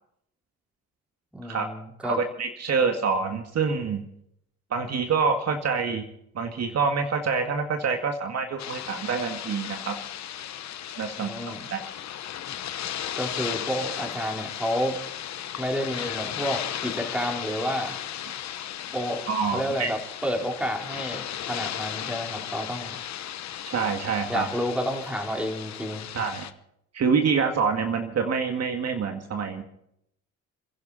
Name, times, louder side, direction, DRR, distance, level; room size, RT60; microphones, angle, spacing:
voice 1, 1.3-2.2 11.2-11.7 13.2-15.0 15.6-18.0 18.9-19.2 19.5-22.9 24.3-26.1, equal, 5° right, 1 dB, 4.0 m, -30 dB
voice 2, 2.0-4.0 4.7-6.1 6.3-10.0 11.0-11.3 11.7-11.8 19.3-19.9 23.7-24.5 26.1-26.5 26.9-29.6, right 5 dB, 55° right, 4 dB, 2.1 m, -26 dB
sound 1, 8.6-26.5, left 11 dB, 65° left, 1.0 m, -35 dB
28.5 x 11.0 x 4.2 m, 0.74 s
cardioid pair, 90°, 30 cm